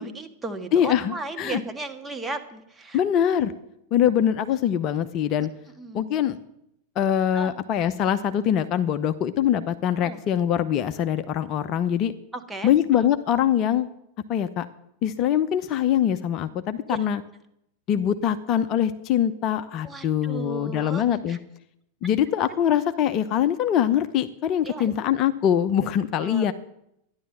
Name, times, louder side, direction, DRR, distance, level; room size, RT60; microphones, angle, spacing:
voice 1, 0.0-3.0 5.8-6.0 7.3-7.5 10.0-10.2 12.3-13.1 16.9-17.0 19.8-21.4 22.5-22.6 24.6-24.9 26.2-26.5, right 3 dB, 10° right, 5 dB, 1.7 m, -36 dB
voice 2, 0.7-1.6 2.9-3.5 3.9-5.5 5.9-6.4 7.0-12.1 12.6-13.9 14.3-14.7 15.0-17.2 17.9-21.4 22.0-26.5, left 10 dB, 35° left, 11 dB, 0.7 m, -23 dB
13.0 x 10.5 x 7.5 m, 0.79 s
figure-of-eight pair, 90°, 0 cm